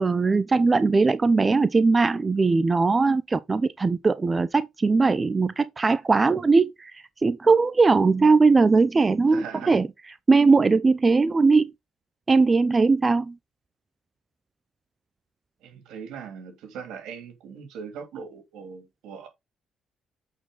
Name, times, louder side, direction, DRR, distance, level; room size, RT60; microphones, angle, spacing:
voice 1, 0.0-9.9 10.3-11.7 12.3-13.4, right 4 dB, 30° right, 0.6 m, -20 dB
voice 2, 9.2-9.7 15.6-19.3, right 6 dB, 90° right, 2.6 m, -40 dB
8.3 x 4.7 x 3.9 m
cardioid pair, 90°, 0 cm